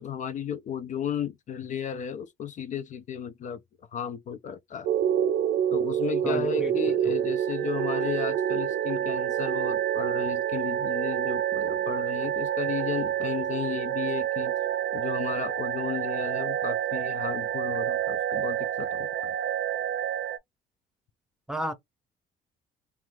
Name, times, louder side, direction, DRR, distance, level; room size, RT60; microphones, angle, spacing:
voice 1, 0.0-3.6 3.9-4.9 5.7-14.5 14.9-19.4, left 8 dB, 45° left, 0.4 m, -34 dB
sound 1, 4.8-20.4, right 10 dB, 85° right, 0.4 m, -28 dB
voice 2, 6.2-7.2 21.5-21.7, equal, 5° right, 0.8 m, -34 dB
2.6 x 2.4 x 3.1 m
cardioid pair, 110°, 17 cm